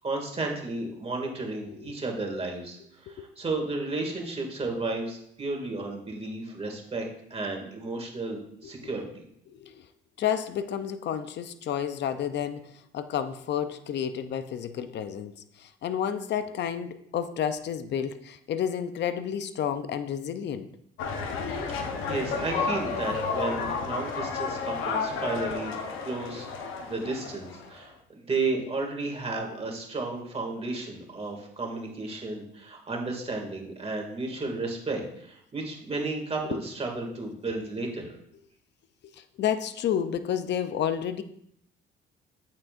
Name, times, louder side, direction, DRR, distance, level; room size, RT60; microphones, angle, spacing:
voice 1, 0.0-9.3 21.7-25.8 26.0-26.5 26.8-38.2, right 3 dB, 30° right, 1 dB, 2.3 m, -33 dB
voice 2, 9.5-9.9 10.2-20.7 36.5-36.6 39.0-41.2, left 9 dB, 60° left, 10 dB, 0.6 m, -31 dB
sound 1, 21.0-27.8, left 5 dB, 90° left, 0.9 m, -31 dB
8.5 x 7.4 x 2.5 m, 0.72 s
cardioid pair, 90°, 20 cm